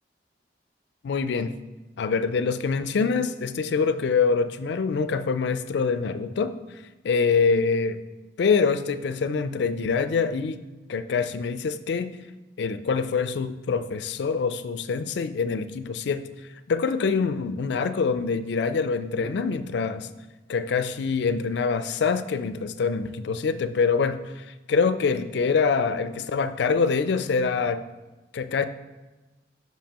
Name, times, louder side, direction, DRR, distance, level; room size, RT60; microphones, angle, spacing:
voice 1, 1.0-1.6 2.0-6.6 7.0-8.0 8.4-10.6 10.9-12.2 12.6-16.3 16.7-20.1 20.5-27.9 28.3-28.7, left 5 dB, 70° left, 12 dB, 0.4 m, -25 dB
7.2 x 5.8 x 2.9 m, 1.1 s
head